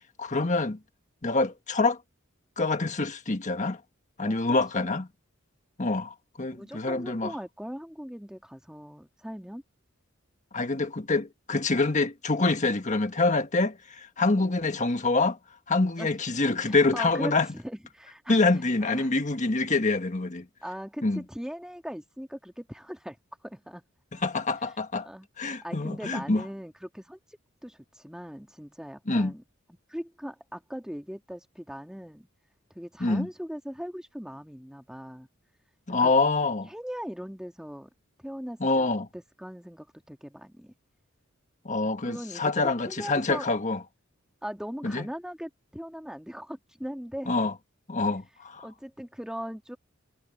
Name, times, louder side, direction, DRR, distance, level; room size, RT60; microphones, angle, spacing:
voice 1, 0.2-0.8 1.2-2.0 2.6-3.8 4.2-5.1 5.8-7.3 10.5-15.4 15.7-17.5 18.3-20.4 21.0-21.2 24.1-25.1 25.4-26.4 29.1-29.3 33.0-33.3 35.9-36.7 38.6-39.1 41.6-43.8 44.8-45.0 47.3-47.5 47.9-48.7, left 3 dB, 35° left, 1.6 m, -26 dB
voice 2, 4.2-5.0 6.5-9.6 14.3-14.5 16.0-16.1 16.6-18.4 18.9-19.2 20.6-23.2 23.4-23.8 25.0-25.3 25.6-27.2 27.6-29.4 29.9-32.3 32.7-35.3 36.0-36.2 36.6-37.9 38.2-40.7 42.0-43.5 44.4-47.5 48.6-49.8, equal, 5° right, 2.4 m, -40 dB
head